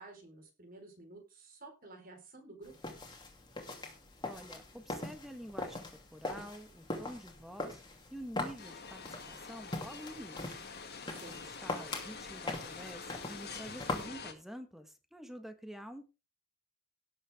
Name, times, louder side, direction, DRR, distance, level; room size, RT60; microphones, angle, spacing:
voice 1, 0.0-2.9 11.1-11.5, right 2 dB, 45° right, 3 dB, 4.4 m, -52 dB
sound 1, 2.6-14.1, left 2 dB, 20° left, 2.7 m, -42 dB
voice 2, 4.2-7.8 8.1-10.6 11.2-16.0, equal, ahead, 7 dB, 1.4 m, -48 dB
sound 2, 8.6-14.3, left 5 dB, 50° left, 2.3 m, -46 dB
18.0 x 7.6 x 3.6 m, 0.29 s
head